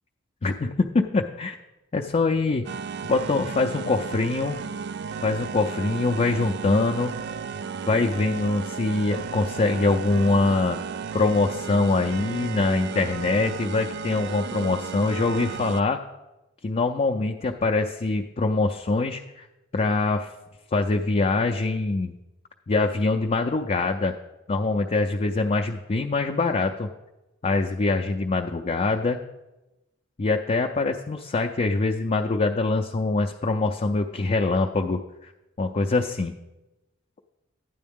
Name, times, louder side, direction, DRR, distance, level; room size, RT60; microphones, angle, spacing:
voice 1, 0.4-1.5 1.9-2.7 3.1-4.6 5.2-7.1 7.9-10.8 11.1-16.0 16.6-19.5 19.7-20.3 20.7-22.1 22.7-24.2 24.5-26.9 27.4-29.2 30.2-35.3 35.6-36.3, left 3 dB, 35° left, 3 dB, 0.4 m, -24 dB
sound 1, 2.7-15.8, right 6 dB, 60° right, 0.4 m, -34 dB
12.0 x 9.3 x 3.6 m, 1.0 s
head